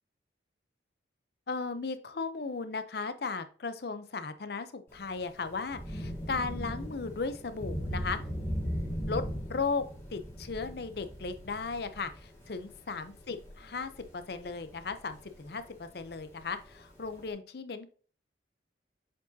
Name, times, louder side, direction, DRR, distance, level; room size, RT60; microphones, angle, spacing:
voice 1, 1.5-8.2 9.1-9.2 9.5-9.8 10.1-17.9, left 4 dB, 55° left, 10 dB, 0.6 m, -36 dB
Thunder / Rain, 4.9-17.3, equal, 15° left, 1.9 m, -39 dB
7.4 x 4.7 x 2.7 m, 0.42 s
head